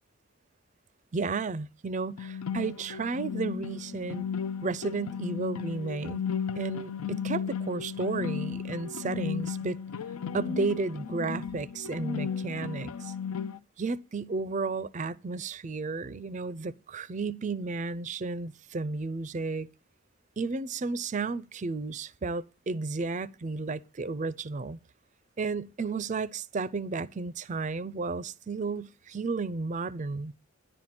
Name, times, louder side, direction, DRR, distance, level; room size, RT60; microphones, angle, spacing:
voice 1, 1.1-4.3 4.6-6.2 6.6-9.8 10.3-13.1 13.8-19.7 20.4-24.8 25.4-30.3, right 4 dB, 35° right, 0.4 m, -33 dB
sound 1, 2.2-13.6, left 7 dB, 85° left, 0.5 m, -35 dB
10.5 x 4.3 x 7.4 m
head